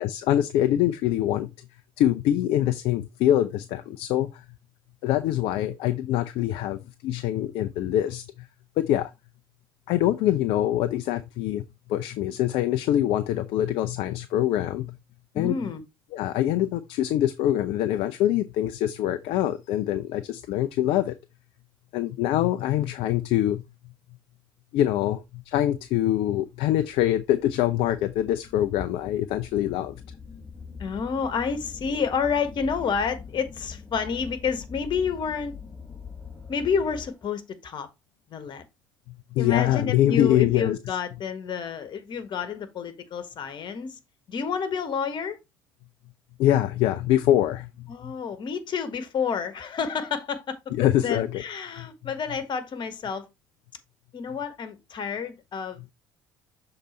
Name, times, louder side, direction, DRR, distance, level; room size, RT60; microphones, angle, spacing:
voice 1, 0.0-1.5 2.0-4.3 5.0-8.2 8.8-9.1 9.9-11.6 11.9-15.0 15.4-15.6 16.1-21.1 21.9-23.6 24.7-30.0 39.3-40.8 46.4-48.1 50.7-51.4 51.8-51.9, left 12 dB, 60° left, 0.5 m, -24 dB
voice 2, 15.3-15.8 30.8-35.5 36.5-37.9 38.3-38.6 39.4-44.0 44.3-45.4 47.9-50.6 51.0-53.3 54.1-55.8, left 6 dB, 45° left, 1.4 m, -29 dB
sound 1, 26.9-37.4, left 5 dB, 10° left, 4.9 m, -43 dB
6.7 x 3.9 x 4.3 m
hypercardioid pair, 60°, 11 cm